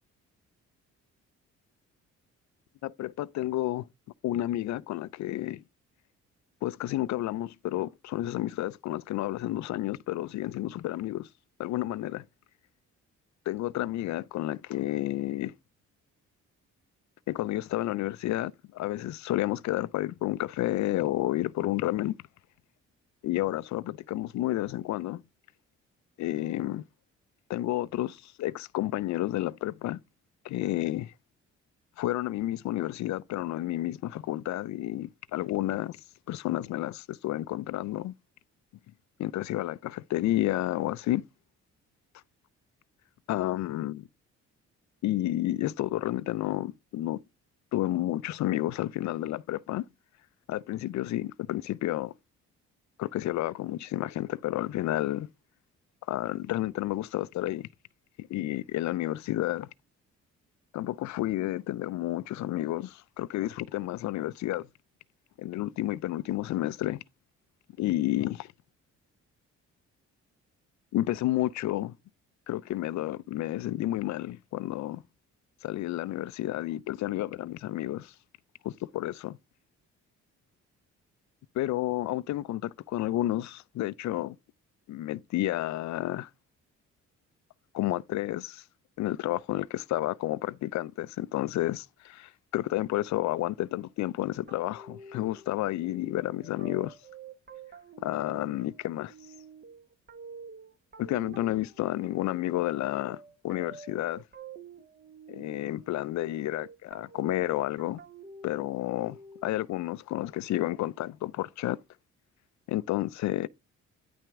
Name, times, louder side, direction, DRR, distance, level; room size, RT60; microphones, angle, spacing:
voice 1, 2.8-3.9 4.2-5.6 6.6-11.3 11.6-12.2 13.5-15.5 17.3-22.2 23.2-25.2 26.2-26.8 27.5-30.0 30.4-31.1 32.0-36.0 36.3-38.1 39.2-41.2 43.3-44.1 45.0-47.2 47.7-49.8 50.5-52.1 53.0-55.3 56.1-57.7 58.2-59.7 60.7-64.6 65.4-67.0 67.8-68.5 70.9-71.9 72.5-75.0 75.6-78.1 78.6-79.4 81.6-84.4 84.9-86.3 87.7-88.6 89.0-97.0 98.0-99.1 101.0-104.2 105.3-108.0 108.4-111.8 112.7-113.5, left 15 dB, 65° left, 0.4 m, -31 dB
sound 1, 94.5-109.8, right 3 dB, 35° right, 1.1 m, -49 dB
9.7 x 5.9 x 3.5 m
cardioid pair, 90°, 30 cm